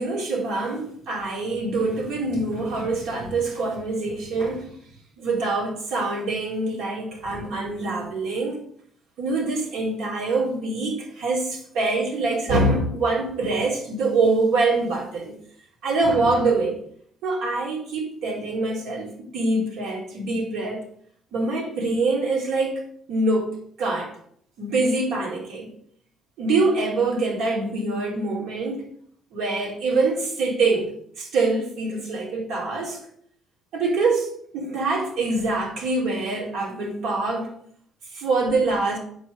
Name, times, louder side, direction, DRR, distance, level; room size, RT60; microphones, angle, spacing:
voice 1, 0.0-4.7 5.2-8.6 9.2-15.3 15.8-16.8 17.2-20.8 21.3-22.8 23.1-23.5 23.8-24.1 24.6-25.7 26.4-28.9 29.3-30.9 31.2-33.0 33.7-34.3 34.5-37.5 38.1-39.0, right 3 dB, 80° right, -3 dB, 3.9 m, -24 dB
8.6 x 4.5 x 6.7 m, 0.65 s
cardioid pair, 115°, 0 cm